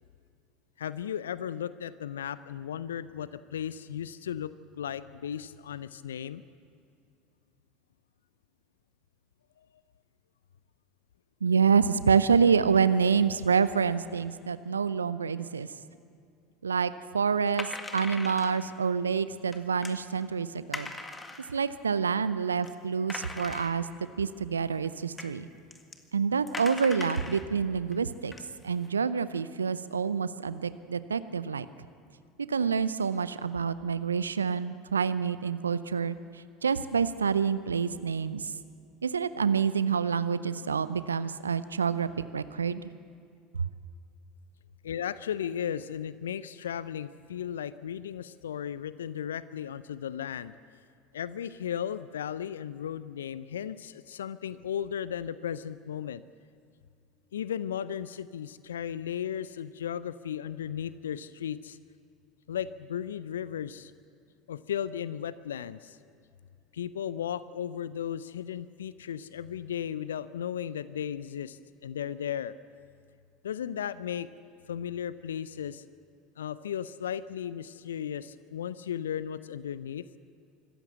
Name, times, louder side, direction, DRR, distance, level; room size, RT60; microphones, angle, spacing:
voice 1, 0.8-6.4 30.3-30.4 44.8-50.5 51.1-56.2 57.3-61.8 62.5-63.9 64.5-66.0 66.7-72.5 73.4-74.3 74.7-75.8 76.4-80.0, left 9 dB, 75° left, 17 dB, 0.5 m, -35 dB
voice 2, 11.4-15.7 16.6-20.9 21.5-23.9 24.2-25.5 26.1-28.3 28.6-31.7 32.5-36.2 36.6-38.5 39.0-42.1 42.3-42.9, right 6 dB, 85° right, 15 dB, 0.6 m, -27 dB
sound 1, 17.5-18.7 19.5-20.0 20.7-21.6 22.2-22.3 22.6-22.7 23.1-24.1 24.8-24.9 25.2-25.3 25.7-26.0 26.5-27.5 27.9-28.0 28.3-28.9, left 3 dB, 15° left, 1.8 m, -40 dB
25.5 x 14.0 x 8.0 m, 2.4 s
figure-of-eight pair, 70°, 0 cm